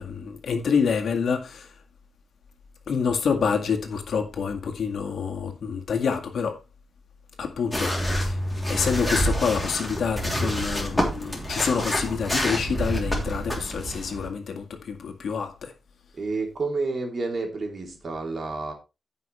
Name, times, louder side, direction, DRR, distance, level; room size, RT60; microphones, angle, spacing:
voice 1, 0.0-1.7 2.9-6.6 7.4-8.4 8.7-15.7, left 6 dB, 70° left, 1.9 m, -27 dB
sound 1, 7.7-14.3, equal, 10° left, 3.1 m, -27 dB
voice 2, 16.2-18.7, right 3 dB, 45° right, 2.8 m, -29 dB
15.5 x 5.6 x 3.3 m
wide cardioid pair, 140°, 0 cm